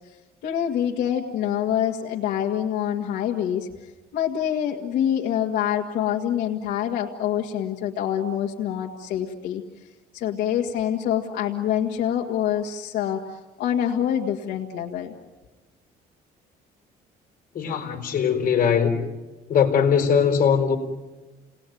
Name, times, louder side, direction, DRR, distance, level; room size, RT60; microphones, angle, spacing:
voice 1, 0.4-3.7 4.1-9.6 10.1-15.1, left 10 dB, 80° left, 2.0 m, -26 dB
voice 2, 17.5-19.0 19.5-20.8, left 7 dB, 55° left, 4.4 m, -20 dB
30.0 x 19.0 x 9.3 m
cardioid pair, 110°, 17 cm